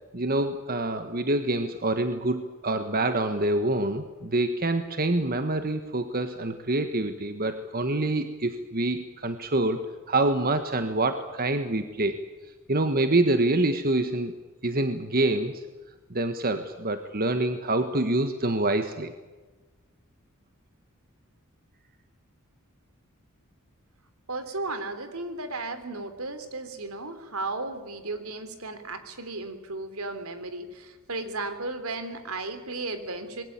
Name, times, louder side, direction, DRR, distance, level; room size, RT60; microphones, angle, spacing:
voice 1, 0.1-12.2 12.7-14.3 14.6-15.6 16.1-19.1, right 2 dB, 45° right, 8 dB, 1.5 m, -26 dB
voice 2, 24.3-33.4, right 2 dB, 80° right, 9 dB, 3.5 m, -35 dB
26.5 x 21.5 x 8.9 m, 1.3 s
head